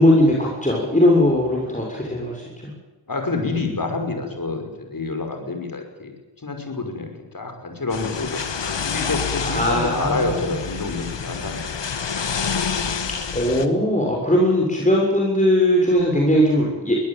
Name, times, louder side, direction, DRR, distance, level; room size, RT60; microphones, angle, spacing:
voice 1, 0.0-2.4 9.4-10.5 13.3-17.0, left 1 dB, 15° left, -2 dB, 6.8 m, -19 dB
voice 2, 3.1-6.1 6.4-8.4 8.8-11.8, left 3 dB, 50° left, 5 dB, 5.8 m, -27 dB
sound 1, 7.9-13.7, left 6 dB, 80° left, 1.7 m, -28 dB
23.0 x 19.0 x 9.1 m, 1.2 s
wide cardioid pair, 65°, 43 cm